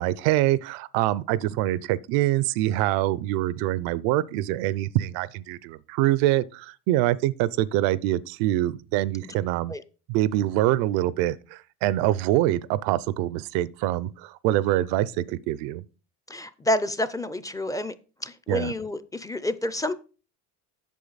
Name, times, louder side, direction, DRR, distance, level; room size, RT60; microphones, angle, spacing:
voice 1, 0.0-9.7 10.1-15.8 18.5-18.7, right 15 dB, 85° right, 0.6 m, -25 dB
voice 2, 16.3-17.9 18.2-19.9, left 1 dB, 10° left, 0.4 m, -28 dB
8.5 x 6.5 x 4.0 m
cardioid pair, 115°, 35 cm